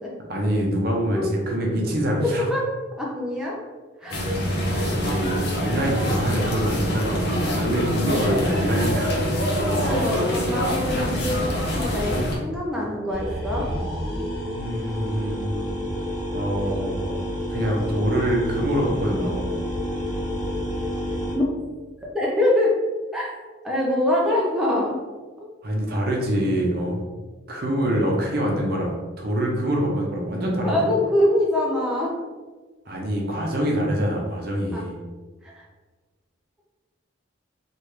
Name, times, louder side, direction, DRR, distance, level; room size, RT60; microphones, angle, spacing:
voice 1, 0.3-2.5 4.4-4.6 4.9-9.1 14.4-15.7 16.3-17.1 17.5-19.4 25.6-27.1 27.5-30.9 32.9-35.0, equal, 50° right, -1 dB, 0.6 m, -25 dB
voice 2, 3.0-3.6 4.0-4.3 9.5-13.7 21.3-21.4 22.0-22.7 23.1-23.3 23.6-25.0 30.6-32.1 34.7-34.8 35.4-35.6, left 1 dB, 5° right, -5 dB, 0.4 m, -24 dB
sound 1, 4.1-12.4, equal, 55° left, 0.7 m, -25 dB
sound 2, 13.1-21.3, equal, 15° left, 1.1 m, -29 dB
3.3 x 2.4 x 3.1 m, 1.3 s
head